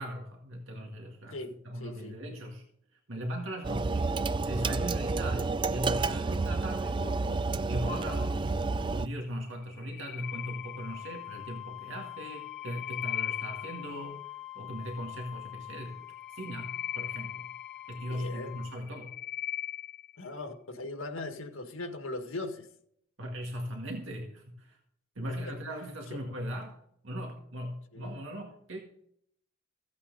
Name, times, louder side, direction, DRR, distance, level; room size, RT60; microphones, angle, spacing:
voice 1, 0.0-1.4 1.6-2.6 2.9-4.2 4.5-14.2 14.6-16.0 16.3-17.5 17.9-19.2 23.2-24.8 25.2-26.8 27.0-28.8, equal, 70° right, 1 dB, 2.0 m, -39 dB
voice 2, 1.3-2.2 18.0-18.6 20.2-22.7 25.4-25.5 27.9-28.1, left 2 dB, 90° left, 6 dB, 1.7 m, -39 dB
sound 1, 3.6-9.1, right 3 dB, 25° right, 0.3 m, -30 dB
sound 2, 9.6-11.3 12.3-14.1 16.1-18.2 18.7-20.2, left 11 dB, 45° left, 0.4 m, -39 dB
Wind instrument woodwind instrument, 10.2-18.8, left 15 dB, ahead, 3.0 m, -45 dB
15.5 x 8.5 x 4.0 m, 0.69 s
head